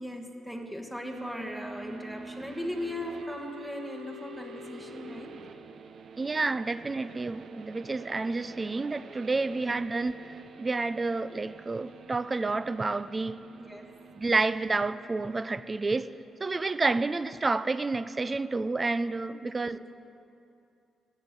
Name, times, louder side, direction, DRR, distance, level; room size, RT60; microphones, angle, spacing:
voice 1, 0.0-5.4 9.5-9.9 13.6-13.9 19.4-19.8, left 1 dB, 5° right, 2 dB, 1.5 m, -38 dB
sound 1, 1.1-16.8, right 3 dB, 55° right, 0.7 m, -48 dB
voice 2, 6.2-13.4 14.2-16.1 16.4-19.8, right 3 dB, 25° right, 14 dB, 0.3 m, -29 dB
14.5 x 8.9 x 6.8 m, 2.6 s
cardioid pair, 120°, 0 cm